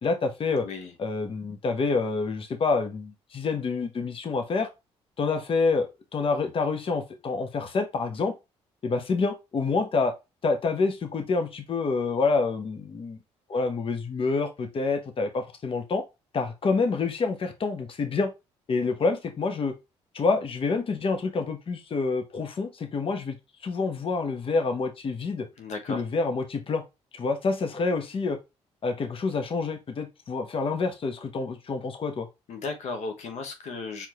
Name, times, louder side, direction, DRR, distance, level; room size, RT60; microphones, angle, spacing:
voice 1, 0.0-0.7 1.0-4.7 5.2-8.3 8.8-10.1 10.4-13.2 13.5-16.0 16.3-18.3 18.7-19.7 20.1-23.4 23.6-25.5 25.9-26.8 27.1-28.4 28.8-32.3, left 4 dB, 50° left, 1.1 m, -27 dB
voice 2, 25.6-26.0 32.5-34.1, left 3 dB, 70° left, 1.1 m, -35 dB
4.8 x 3.7 x 2.9 m
supercardioid pair, 70°, 12 cm